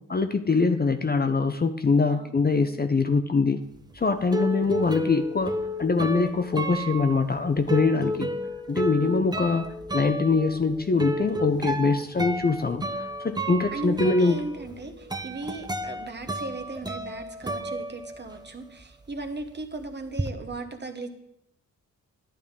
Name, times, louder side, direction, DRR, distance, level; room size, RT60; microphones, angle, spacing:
voice 1, 0.1-3.6 3.9-5.5 5.8-8.3 8.7-9.7 9.9-14.4, left 4 dB, 30° left, 7 dB, 0.5 m, -23 dB
sound 1, 3.8-18.6 18.8-20.3, right 1 dB, 10° right, 0.6 m, -32 dB
voice 2, 13.7-21.1, right 2 dB, 35° right, 6 dB, 1.1 m, -37 dB
11.5 x 10.0 x 3.6 m, 0.78 s
wide cardioid pair, 130°, 32 cm